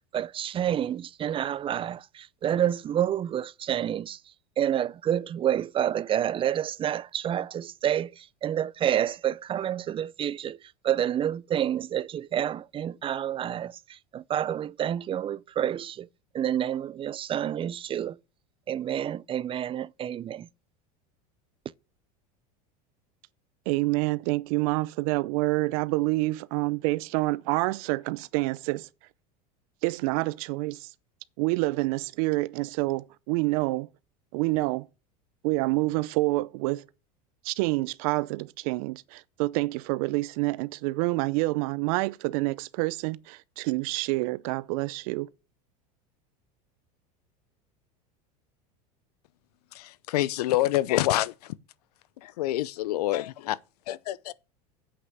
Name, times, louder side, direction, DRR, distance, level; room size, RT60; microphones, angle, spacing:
voice 1, 0.1-16.1 16.3-18.2 18.7-20.5, right 10 dB, 25° right, 0.4 m, -29 dB
voice 2, 23.7-28.9 29.8-30.9 31.4-33.9 34.3-34.9 35.4-36.8 37.4-45.3, right 22 dB, 65° right, 0.6 m, -27 dB
voice 3, 49.7-51.5 52.2-53.6 53.9-54.3, left 15 dB, 85° left, 0.6 m, -27 dB
8.0 x 5.9 x 7.9 m
supercardioid pair, 105°, 20 cm